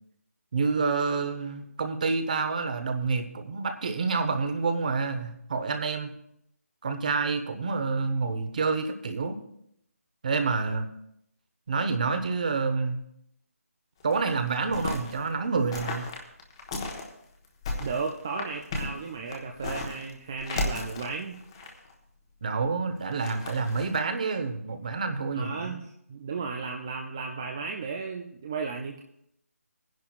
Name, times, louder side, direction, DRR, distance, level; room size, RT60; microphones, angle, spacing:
voice 1, 0.5-6.1 6.8-9.4 10.2-10.9 11.7-13.0 14.0-16.1 22.4-25.8, right 4 dB, 30° right, 8 dB, 0.9 m, -28 dB
sound 1, 14.0-15.2 15.7-17.1 17.4-20.1 20.4-21.9 23.0-24.0, left 2 dB, 20° left, 1.2 m, -35 dB
voice 2, 17.8-21.4 25.3-25.8 26.1-29.0, right 4 dB, 15° right, 1 dB, 0.3 m, -34 dB
20.5 x 10.5 x 2.4 m, 0.75 s
figure-of-eight pair, 170°, 8 cm